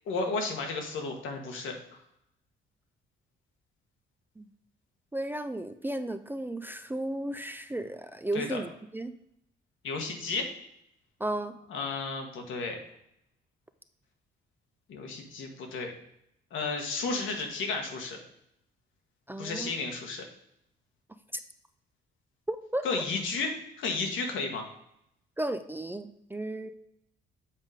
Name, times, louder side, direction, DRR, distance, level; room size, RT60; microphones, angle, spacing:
voice 1, 0.1-1.8 8.3-8.6 9.8-10.5 11.7-12.8 14.9-15.9 16.5-18.2 19.4-20.2 22.8-24.6, left 3 dB, 80° left, 3 dB, 1.4 m, -33 dB
voice 2, 5.1-9.1 11.2-11.5 19.3-19.7 22.5-22.8 25.4-26.7, right 1 dB, 10° right, 9 dB, 0.4 m, -34 dB
7.3 x 3.7 x 5.0 m, 0.75 s
cardioid pair, 90°, 20 cm